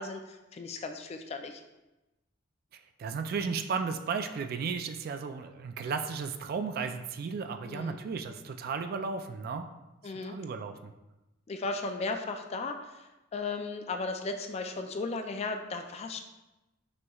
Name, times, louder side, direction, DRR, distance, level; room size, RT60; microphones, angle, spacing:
voice 1, 0.0-1.6 7.7-8.0 10.0-10.4 11.5-16.2, left 3 dB, 35° left, 6 dB, 0.3 m, -36 dB
voice 2, 3.0-9.7 10.0-10.9, right 5 dB, 50° right, 7 dB, 0.3 m, -34 dB
6.1 x 2.9 x 2.3 m, 1.0 s
head